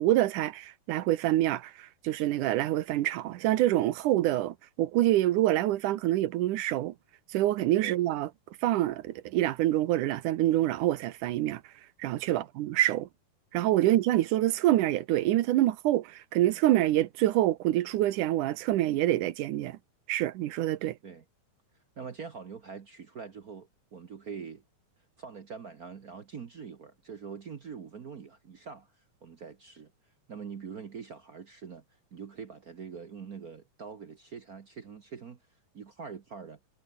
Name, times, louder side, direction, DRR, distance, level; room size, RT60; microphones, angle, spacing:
voice 1, 0.0-6.9 7.3-8.3 8.6-11.6 12.0-13.1 13.5-19.8 20.1-21.0, right 14 dB, 85° right, 2.5 m, -26 dB
voice 2, 22.0-24.6 25.2-28.9 29.2-29.9 30.3-31.8 32.1-35.4 35.7-36.6, right 6 dB, 65° right, 0.8 m, -43 dB
omnidirectional pair, 3.6 m